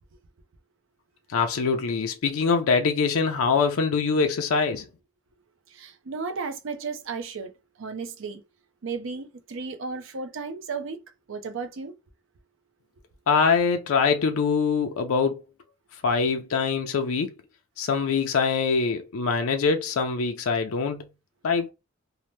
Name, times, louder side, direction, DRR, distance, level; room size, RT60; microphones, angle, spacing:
voice 1, 1.3-4.8 13.3-15.4 16.0-17.3 17.8-21.1 21.4-21.7, left 5 dB, 85° left, 0.5 m, -23 dB
voice 2, 5.7-7.5 7.8-8.4 8.8-11.0 11.3-12.0, right 4 dB, 65° right, 0.5 m, -34 dB
2.8 x 2.1 x 3.0 m
head